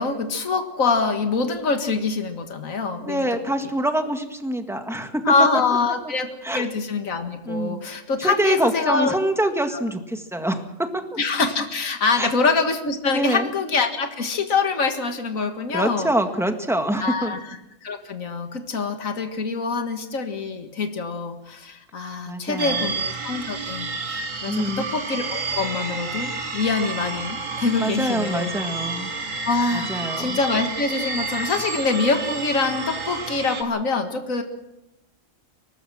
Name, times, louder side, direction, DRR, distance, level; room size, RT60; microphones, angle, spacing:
voice 1, 0.0-3.3 5.3-9.2 9.7-9.8 11.2-16.1 17.0-17.4 17.8-28.5 29.5-34.4, left 4 dB, 75° left, 6 dB, 2.1 m, -25 dB
voice 2, 3.1-5.3 6.4-6.7 7.5-7.8 8.2-11.1 12.2-12.3 13.1-13.5 15.7-17.3 22.3-22.9 24.5-24.9 27.8-29.1 29.7-30.4, right 1 dB, ahead, 6 dB, 1.7 m, -25 dB
sound 1, 22.6-33.6, right 4 dB, 70° right, 2.4 m, -30 dB
24.0 x 19.5 x 6.3 m, 0.90 s
omnidirectional pair, 1.4 m